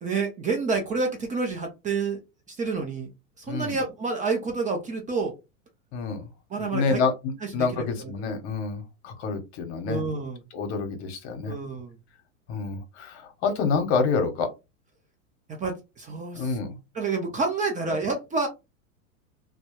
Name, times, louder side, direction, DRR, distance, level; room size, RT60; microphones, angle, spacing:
voice 1, 0.0-2.2 2.5-3.1 3.4-5.3 6.5-7.0 7.4-8.4 9.9-10.4 11.5-11.9 15.5-16.6 16.9-18.5, right 4 dB, 20° right, 3 dB, 0.5 m, -29 dB
voice 2, 5.9-6.3 6.6-7.1 7.5-10.0 10.5-11.5 12.5-14.5 16.3-16.8 17.9-18.0, left 4 dB, 55° left, 6 dB, 0.8 m, -27 dB
2.2 x 2.1 x 2.9 m, 0.24 s
hypercardioid pair, 95°, 41 cm